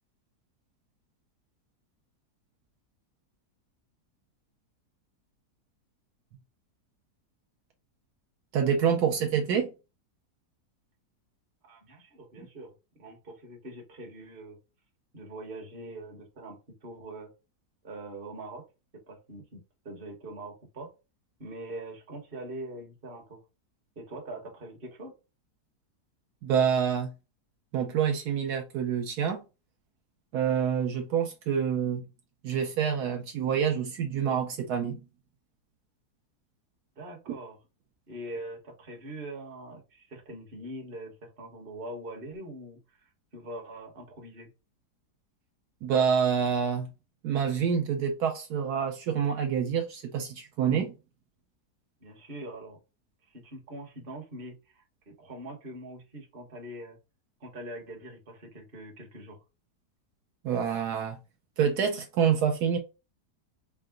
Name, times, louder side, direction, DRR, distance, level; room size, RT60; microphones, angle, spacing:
voice 1, 8.5-9.7 26.4-27.1 27.7-29.4 30.3-32.0 32.4-35.0 45.8-46.9 47.2-50.9 60.4-61.2 61.6-62.8, right 7 dB, 75° right, 1.2 m, -27 dB
voice 2, 11.6-12.7 13.0-14.6 15.1-17.3 17.8-18.6 19.1-20.9 21.4-23.4 24.0-25.1 37.0-37.6 38.1-44.5 52.0-52.8 53.3-57.0 57.4-59.4, right 1 dB, 35° right, 1.3 m, -43 dB
4.7 x 2.2 x 3.6 m
omnidirectional pair, 1.7 m